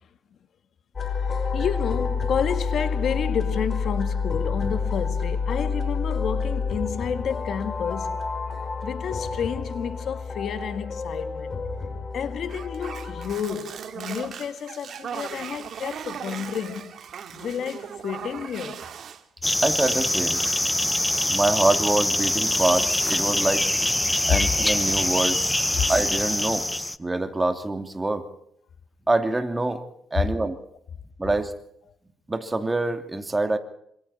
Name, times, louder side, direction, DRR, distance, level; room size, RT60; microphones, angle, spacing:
sound 1, 1.0-13.4, left 5 dB, 40° left, 5.4 m, -29 dB
voice 1, 1.2-8.2 8.8-11.6 12.1-17.0 17.3-18.9 25.8-25.9, left 7 dB, 60° left, 1.8 m, -30 dB
sound 2, 12.5-19.2 19.5-21.5, right 8 dB, 60° right, 2.4 m, -39 dB
sound 3, 19.4-27.0, left 1 dB, 10° left, 0.8 m, -24 dB
voice 2, 19.6-20.4 21.3-23.7 24.3-25.4 25.9-26.7 27.0-28.3 29.1-29.8 30.1-30.6 31.2-31.5 32.3-33.6, right 2 dB, 20° right, 2.7 m, -25 dB
28.0 x 26.5 x 4.3 m
cardioid pair, 90°, 0 cm